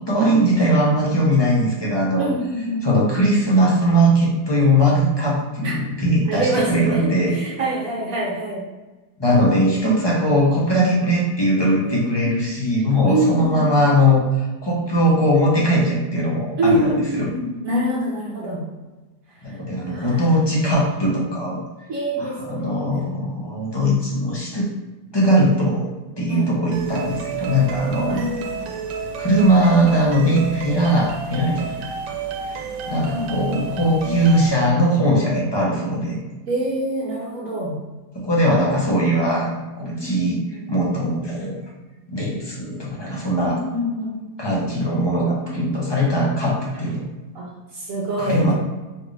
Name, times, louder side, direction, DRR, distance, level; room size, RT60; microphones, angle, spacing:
voice 1, 0.0-2.3 2.8-7.3 9.2-17.3 19.4-21.6 22.2-24.7 25.1-25.9 26.2-28.2 29.1-31.7 32.5-32.6 32.9-36.2 38.1-40.4 40.7-41.6 42.1-43.6 44.4-47.0 48.2-48.5, equal, 30° left, -4 dB, 0.4 m, -20 dB
voice 2, 2.2-2.8 5.6-5.8 6.3-8.6 11.8-12.5 13.1-13.7 16.6-18.6 19.9-20.2 21.9-23.1 26.3-26.5 28.1-28.6 33.1-33.3 34.0-34.2 36.5-37.8 40.0-40.7 43.5-44.1 45.4-46.0 47.3-48.5, right 1 dB, 65° right, -3 dB, 1.0 m, -25 dB
sound 1, 26.7-34.5, right 5 dB, 90° right, 1.2 m, -31 dB
4.4 x 2.5 x 3.1 m, 1.2 s
omnidirectional pair, 1.8 m